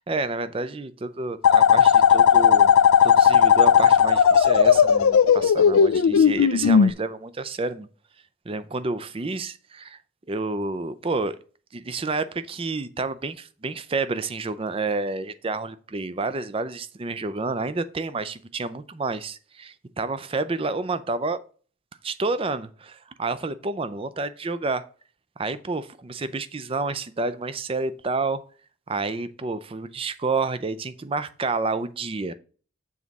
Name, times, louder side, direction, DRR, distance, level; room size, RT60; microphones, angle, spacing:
voice 1, 0.0-2.7 3.0-7.9 8.5-10.0 10.3-11.4 11.7-21.4 22.0-24.8 25.4-28.4 28.9-32.3, right 3 dB, 25° right, 0.4 m, -29 dB
sound 1, 1.4-6.9, left 8 dB, 85° left, 0.4 m, -16 dB
7.2 x 4.1 x 6.0 m
head